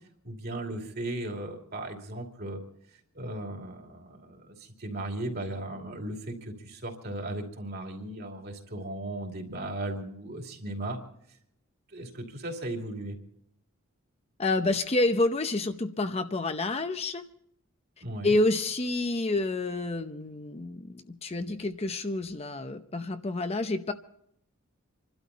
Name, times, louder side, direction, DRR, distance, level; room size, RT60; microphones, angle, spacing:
voice 1, 0.2-2.6 3.1-11.0 11.9-13.2 18.0-18.4, right 1 dB, 50° right, 3 dB, 2.7 m, -36 dB
voice 2, 14.4-17.2 18.2-23.9, left 2 dB, 30° left, 8 dB, 0.7 m, -28 dB
27.0 x 12.5 x 4.1 m, 0.71 s
head